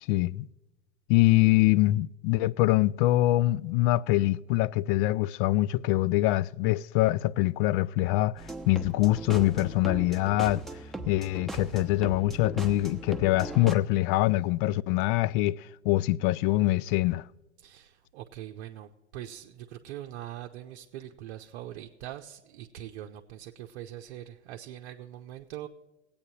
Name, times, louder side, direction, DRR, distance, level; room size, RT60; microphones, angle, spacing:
voice 1, 0.1-0.5 1.1-10.6 11.1-17.2, left 17 dB, 50° left, 0.4 m, -24 dB
sound 1, 8.4-13.8, right 2 dB, ahead, 1.0 m, -39 dB
voice 2, 17.6-25.7, right 12 dB, 60° right, 0.7 m, -42 dB
20.5 x 8.5 x 2.8 m
figure-of-eight pair, 75°, 34 cm